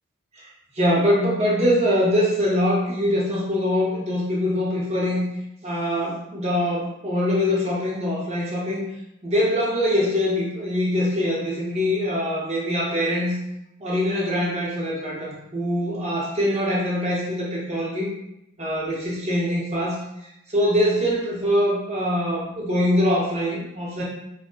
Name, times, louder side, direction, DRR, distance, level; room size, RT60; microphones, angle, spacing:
voice 1, 0.8-5.3 5.6-8.9 9.2-13.4 13.8-18.1 18.6-20.0 20.5-24.0, left 1 dB, 30° right, -5 dB, 0.7 m, -23 dB
3.8 x 2.1 x 2.2 m, 0.83 s
head